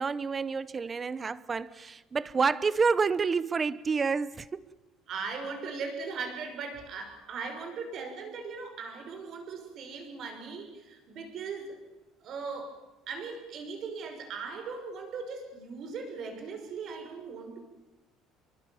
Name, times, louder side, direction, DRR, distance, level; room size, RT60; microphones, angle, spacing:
voice 1, 0.0-4.7, right 5 dB, 20° right, 19 dB, 0.8 m, -29 dB
voice 2, 5.1-11.8 12.2-12.8 13.1-17.6, right 4 dB, 45° right, 5 dB, 5.9 m, -39 dB
28.5 x 23.5 x 7.2 m, 1.1 s
cardioid pair, 165°, 0 cm